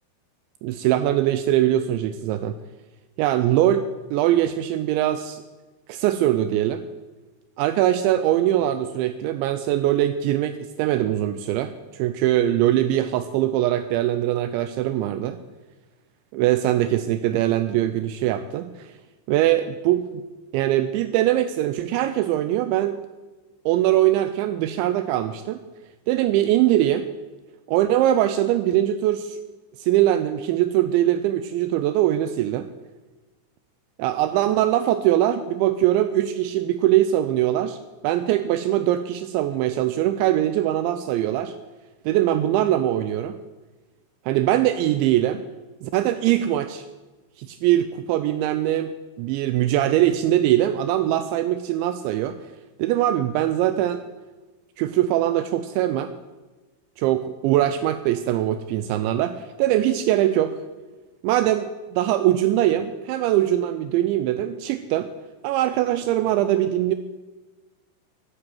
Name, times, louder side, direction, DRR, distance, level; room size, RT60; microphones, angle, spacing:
voice 1, 0.6-2.6 3.2-5.4 5.9-6.8 7.6-15.4 16.3-18.9 19.3-20.2 20.5-23.0 23.7-25.6 26.1-27.1 27.7-29.4 29.8-32.7 34.0-37.8 38.0-41.5 42.1-43.4 44.3-45.4 45.8-46.9 47.4-48.9 49.2-52.4 52.8-54.0 54.8-56.1 57.0-60.6 61.2-65.1 65.4-67.0, right 13 dB, 85° right, 11 dB, 2.6 m, -22 dB
12.5 x 9.1 x 7.7 m, 1.2 s
omnidirectional pair, 5.7 m